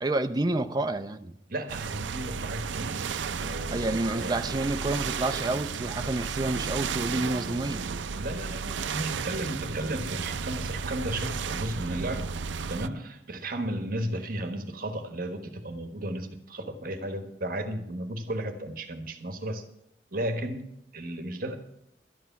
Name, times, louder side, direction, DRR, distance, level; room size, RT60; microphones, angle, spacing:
voice 1, 0.0-1.4 3.7-7.8, right 2 dB, 25° right, 0.6 m, -29 dB
voice 2, 1.5-4.4 5.1-5.2 8.1-12.3 12.7-19.7 20.1-21.6, right 1 dB, 50° right, 1.3 m, -34 dB
sound 1, 1.7-12.9, right 5 dB, 90° right, 0.5 m, -33 dB
12.5 x 9.8 x 5.8 m
head